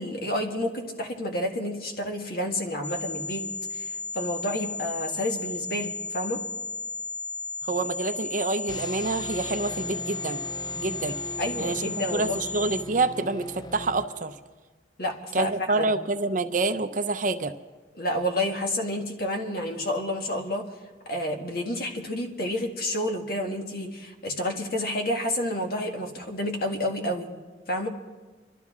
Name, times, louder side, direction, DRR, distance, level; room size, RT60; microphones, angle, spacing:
voice 1, 0.0-3.5 3.7-6.4 11.4-12.4 15.0-15.9 17.9-20.7 21.1-27.3 27.7-27.9, left 1 dB, 55° left, 2 dB, 1.6 m, -30 dB
sound 1, 2.8-12.8, left 3 dB, 70° left, 0.7 m, -34 dB
voice 2, 7.6-10.4 10.7-11.2 11.6-14.3 15.3-17.5, right 3 dB, 45° right, 10 dB, 0.6 m, -27 dB
sound 2, 8.7-14.5, left 1 dB, 25° left, 0.4 m, -40 dB
26.0 x 12.5 x 3.6 m, 1.3 s
head